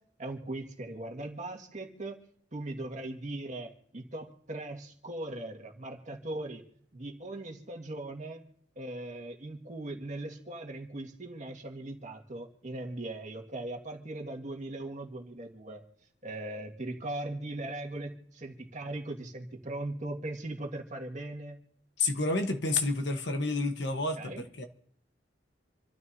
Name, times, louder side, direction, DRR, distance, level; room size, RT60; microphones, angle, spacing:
voice 1, 0.2-2.2 2.5-6.6 6.9-8.4 8.8-15.8 16.2-21.6 24.2-24.4, right 2 dB, 40° right, 1.9 m, -39 dB
voice 2, 22.0-24.6, left 3 dB, 65° left, 1.2 m, -30 dB
27.5 x 13.0 x 2.8 m
head